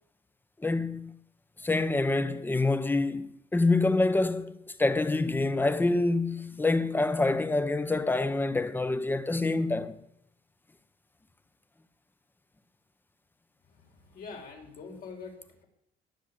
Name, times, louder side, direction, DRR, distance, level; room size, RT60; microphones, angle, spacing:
voice 1, 0.6-1.2 1.6-10.0, left 2 dB, 10° left, 1.0 m, -26 dB
voice 2, 13.7-15.4, left 4 dB, 60° left, 5.0 m, -44 dB
20.5 x 7.4 x 8.5 m
cardioid pair, 110°, 17 cm